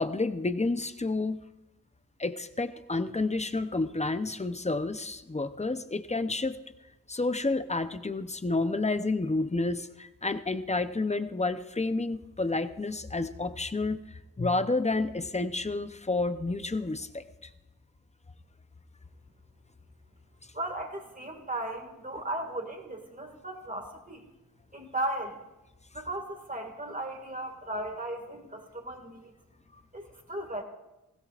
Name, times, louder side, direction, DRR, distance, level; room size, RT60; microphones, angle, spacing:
voice 1, 0.0-1.4 2.2-6.6 7.1-14.0 14.4-17.5, left 3 dB, 20° left, 10 dB, 0.7 m, -30 dB
voice 2, 20.5-24.2 24.7-25.4 25.9-29.3 29.9-30.6, right 1 dB, 20° right, 4 dB, 2.0 m, -36 dB
20.0 x 16.5 x 2.5 m, 1.0 s
wide cardioid pair, 70°, 36 cm